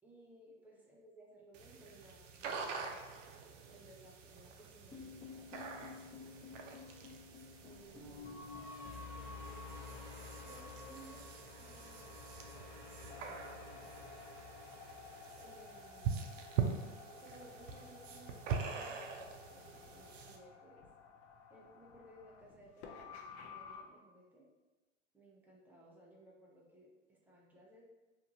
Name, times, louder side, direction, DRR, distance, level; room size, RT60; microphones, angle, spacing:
voice 1, 0.0-3.0 3.7-5.7 7.6-8.7 9.5-11.2 11.6-12.7 13.0-13.4 13.7-13.8 15.4-16.4 17.2-20.9 21.5-24.5 25.1-27.8, right 1 dB, 5° right, -5 dB, 0.6 m, -60 dB
sound 1, 1.5-20.4, right 6 dB, 75° right, 0.5 m, -44 dB
sound 2, 4.9-17.1, left 4 dB, 20° left, 1.0 m, -51 dB
sound 3, 5.9-23.8, left 5 dB, 55° left, 0.6 m, -56 dB
2.6 x 2.5 x 2.8 m, 1.1 s
hypercardioid pair, 100°, 37 cm